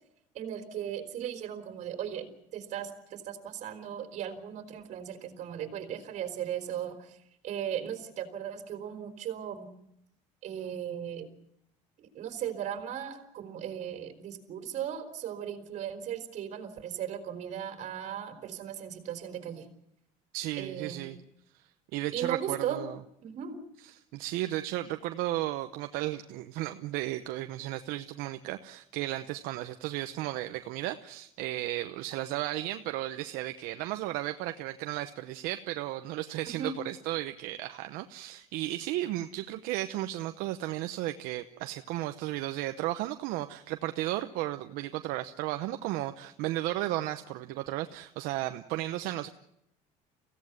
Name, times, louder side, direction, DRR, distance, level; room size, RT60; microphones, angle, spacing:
voice 1, 0.3-7.2 7.4-9.7 10.4-11.3 12.0-19.7 20.6-21.1 22.1-22.8 23.2-23.6 36.5-36.8, right 9 dB, 55° right, 7 dB, 3.9 m, -37 dB
voice 2, 20.3-21.2 21.9-23.0 24.1-49.3, right 15 dB, 75° right, 8 dB, 0.9 m, -34 dB
24.0 x 16.5 x 9.6 m, 0.80 s
cardioid pair, 130°, 15 cm